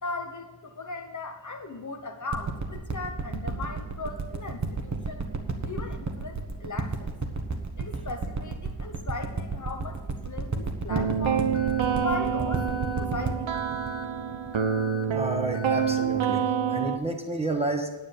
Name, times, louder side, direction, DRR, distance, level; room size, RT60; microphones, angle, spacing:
voice 1, 0.0-5.2 5.6-7.1 7.8-11.5 12.0-12.7 13.0-13.5, left 3 dB, 40° left, 5 dB, 1.1 m, -37 dB
sound 1, 2.3-15.1 15.7-15.8, right 3 dB, 35° right, 1.3 m, -32 dB
sound 2, 10.9-17.0, right 7 dB, 75° right, 0.8 m, -27 dB
Alarm, 11.5-12.0 12.5-13.0 13.5-14.0 14.5-15.0 15.5-16.0, left 7 dB, 65° left, 1.0 m, -42 dB
voice 2, 15.1-16.4 16.7-17.9, right 2 dB, 15° right, 3 dB, 1.3 m, -30 dB
9.6 x 9.6 x 5.3 m, 1.2 s
wide cardioid pair, 165°, 47 cm